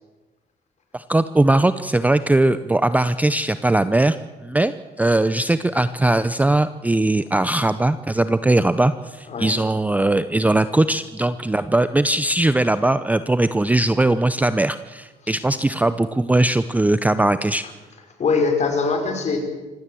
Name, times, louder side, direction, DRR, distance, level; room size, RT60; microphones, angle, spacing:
voice 1, 0.9-4.2 4.4-17.6, right 2 dB, 10° right, 13 dB, 0.6 m, -20 dB
voice 2, 18.2-19.5, left 4 dB, 45° left, 5 dB, 5.2 m, -22 dB
25.0 x 16.5 x 7.7 m, 1.2 s
cardioid pair, 110°, 17 cm